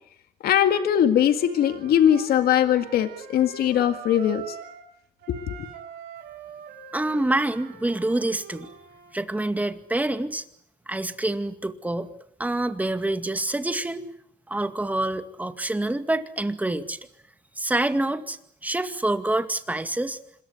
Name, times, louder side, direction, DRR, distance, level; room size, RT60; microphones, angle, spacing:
voice 1, 0.4-4.6 5.3-5.7, left 10 dB, 65° left, 8 dB, 2.0 m, -21 dB
Wind instrument woodwind instrument, 1.3-4.9 5.2-9.1, right 6 dB, 80° right, 7.4 m, -43 dB
voice 2, 6.9-8.7 9.1-10.4 10.9-12.1 12.4-14.0 14.5-17.0 17.6-18.4 18.6-20.2, right 2 dB, 10° right, 8 dB, 2.1 m, -26 dB
26.5 x 21.5 x 9.4 m, 0.73 s
cardioid pair, 110°, 17 cm